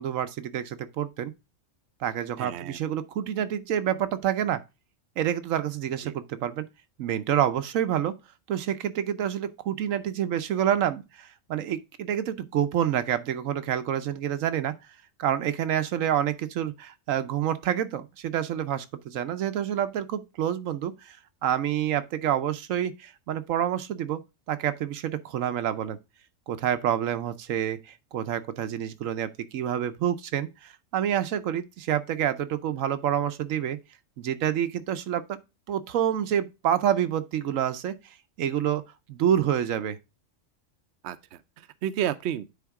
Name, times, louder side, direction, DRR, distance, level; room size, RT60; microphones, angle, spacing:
voice 1, 0.0-1.3 2.0-4.6 5.2-6.6 7.0-8.1 8.5-14.7 15.2-21.2 21.4-24.2 24.5-26.0 26.5-33.8 34.2-35.4 35.7-37.9 38.4-40.0, right 10 dB, 85° right, 1.1 m, -28 dB
voice 2, 2.4-2.8 6.0-6.1 41.0-42.4, right 10 dB, 65° right, 0.8 m, -32 dB
9.3 x 3.9 x 3.5 m
omnidirectional pair, 1.3 m